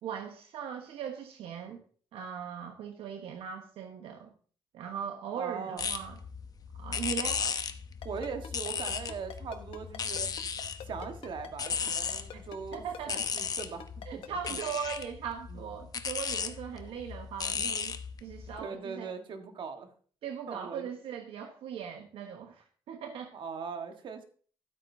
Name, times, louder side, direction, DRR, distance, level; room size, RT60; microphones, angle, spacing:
voice 1, 0.0-1.8 2.1-4.3 4.7-6.2 6.8-7.4 12.7-13.2 14.1-19.1 20.2-23.3, right 7 dB, 90° right, 5 dB, 1.1 m, -39 dB
voice 2, 5.3-5.9 7.4-7.5 8.0-10.3 10.8-14.6 15.5-15.7 18.6-19.9 20.5-20.9 23.3-24.2, right 5 dB, 65° right, 6 dB, 1.4 m, -40 dB
sound 1, 5.8-18.6, left 6 dB, 45° left, 0.8 m, -36 dB
Ringtone, 8.0-14.7, left 9 dB, 80° left, 1.1 m, -44 dB
12.5 x 8.5 x 2.7 m, 0.44 s
cardioid pair, 100°, 9 cm